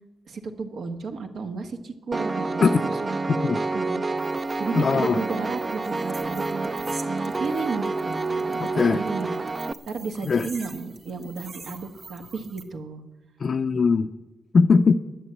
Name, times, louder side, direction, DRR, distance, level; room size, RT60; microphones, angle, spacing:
voice 1, 0.3-2.6 3.0-4.0 4.6-6.7 7.0-9.3 9.9-13.0, right 4 dB, 70° right, 1.5 m, -33 dB
Piano, 2.1-9.7, right 3 dB, 25° right, 0.4 m, -28 dB
sound 1, 4.2-12.6, right 4 dB, 50° right, 1.7 m, -46 dB
voice 2, 4.7-5.2 8.6-9.0 10.3-10.5 13.4-14.1 14.5-14.9, left 5 dB, 45° left, 0.5 m, -20 dB
11.0 x 10.5 x 8.7 m
cardioid pair, 120°, 0 cm